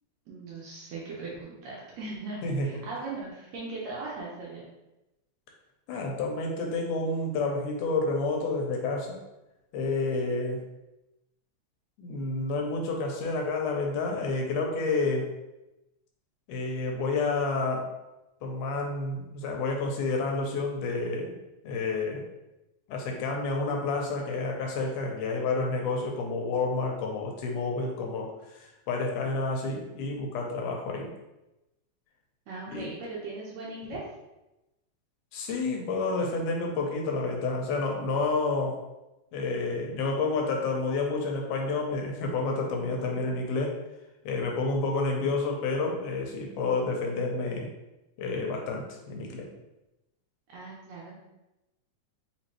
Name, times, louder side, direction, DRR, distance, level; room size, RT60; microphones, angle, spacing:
voice 1, 0.3-4.6 32.5-34.0 50.5-51.2, right 3 dB, 70° right, -5 dB, 1.7 m, -39 dB
voice 2, 5.9-9.2 9.7-10.6 12.0-15.3 16.5-17.9 18.4-21.4 21.6-22.2 22.9-31.1 32.7-32.9 35.3-38.8 39.3-43.8 44.3-47.7 48.2-49.5, left 3 dB, 80° left, 1 dB, 2.1 m, -29 dB
4.9 x 3.1 x 2.9 m, 0.97 s
omnidirectional pair, 3.7 m